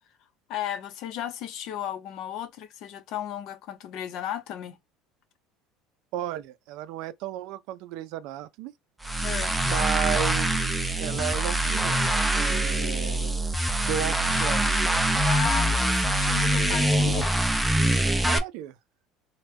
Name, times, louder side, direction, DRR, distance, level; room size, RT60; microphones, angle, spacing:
voice 1, 0.5-4.8 9.2-9.6 15.2-17.5, left 10 dB, 55° left, 0.7 m, -35 dB
voice 2, 6.1-8.7 9.6-10.7 11.0-12.0 12.3-13.3 13.8-14.7 18.3-18.8, right 11 dB, 65° right, 0.4 m, -33 dB
sound 1, 9.0-18.4, right 1 dB, 5° right, 0.5 m, -24 dB
3.1 x 2.2 x 3.4 m
cardioid pair, 135°, 0 cm